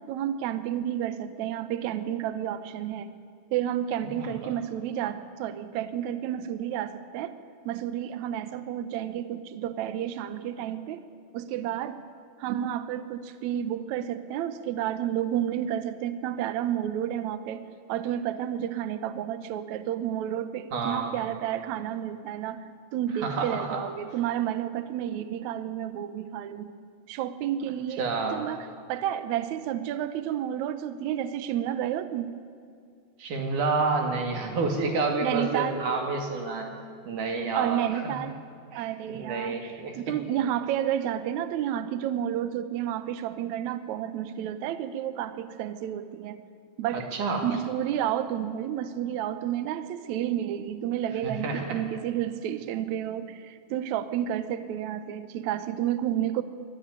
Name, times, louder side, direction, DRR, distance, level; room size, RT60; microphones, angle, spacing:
voice 1, 0.0-3.1 3.5-7.3 7.6-11.0 11.3-12.0 12.4-17.6 17.9-22.6 22.9-26.7 27.1-28.0 28.3-32.3 35.2-35.8 37.5-38.3 38.7-46.4 46.8-47.1 47.4-56.4, right 10 dB, 85° right, 12 dB, 1.6 m, -31 dB
voice 2, 4.1-4.5 20.7-21.1 23.2-23.8 28.0-28.5 33.2-36.7 37.1-38.2 38.7-40.0 46.9-47.5 51.2-51.8, right 3 dB, 55° right, 3 dB, 3.7 m, -29 dB
22.5 x 13.5 x 9.6 m, 2.4 s
omnidirectional pair, 4.5 m